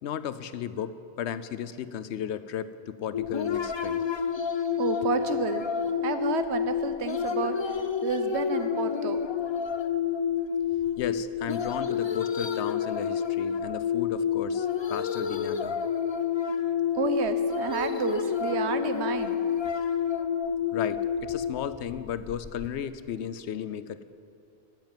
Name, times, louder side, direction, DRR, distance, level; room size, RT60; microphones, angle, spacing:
voice 1, 0.0-4.0 11.0-15.8 20.7-24.0, left 9 dB, 85° left, 13 dB, 0.9 m, -34 dB
sound 1, 3.1-22.7, left 7 dB, 40° left, 0.4 m, -29 dB
voice 2, 4.8-5.7 6.0-7.6 8.0-9.2 16.9-19.4, right 6 dB, 80° right, 9 dB, 1.1 m, -30 dB
13.5 x 7.4 x 8.9 m, 2.5 s
omnidirectional pair, 1.1 m